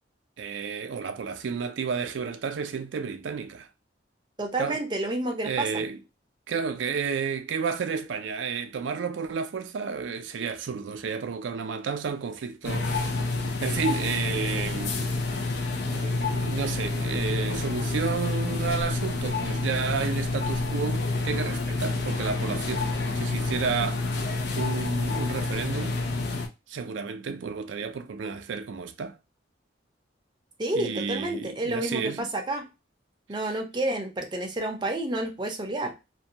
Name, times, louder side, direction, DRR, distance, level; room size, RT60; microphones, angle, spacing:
voice 1, 0.4-3.7 4.6-4.8 5.4-6.0 6.5-13.0 13.6-15.1 15.9-24.0 24.5-26.0 26.7-29.2 30.7-32.3, right 5 dB, 80° right, 0.4 m, -31 dB
voice 2, 4.4-5.8 30.6-32.7 33.3-35.9, right 1 dB, 25° right, 0.6 m, -30 dB
sound 1, 12.6-26.5, left 3 dB, 60° left, 0.5 m, -28 dB
2.6 x 2.2 x 2.7 m
head